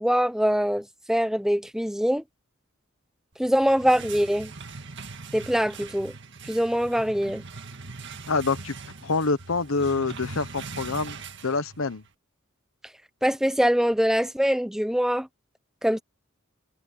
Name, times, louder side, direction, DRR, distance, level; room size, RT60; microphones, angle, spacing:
voice 1, 0.0-2.2 3.4-4.5 5.3-6.1 6.5-7.4 13.2-15.3 15.8-16.0, equal, ahead, 0.8 m, -23 dB
sound 1, 3.4-12.1, right 4 dB, 60° right, 1.9 m, -41 dB
voice 2, 8.3-8.7 9.0-11.2 11.4-12.0, left 3 dB, 85° left, 1.1 m, -26 dB
head